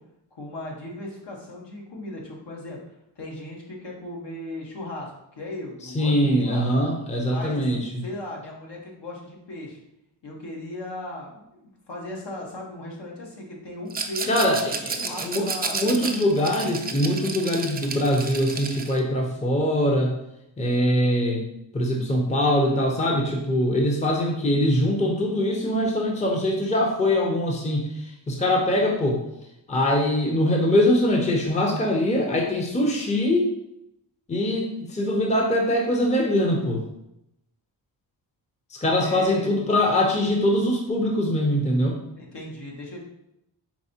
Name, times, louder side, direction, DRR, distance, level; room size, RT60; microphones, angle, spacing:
voice 1, 0.3-2.8 3.2-6.7 7.3-7.6 8.0-9.8 10.2-14.3 15.0-15.8 16.0-16.5 24.1-24.3 38.9-39.6 42.2-43.0, left 1 dB, 65° left, -2 dB, 1.4 m, -37 dB
voice 2, 5.8-8.0 14.3-20.1 20.6-21.4 21.7-29.2 29.7-33.5 34.3-36.8 38.7-42.0, left 1 dB, 15° left, 0 dB, 0.7 m, -23 dB
Rattle, 13.9-19.0, right 4 dB, 20° right, 0.4 m, -32 dB
4.6 x 3.5 x 2.8 m, 0.83 s
cardioid pair, 75°, 45 cm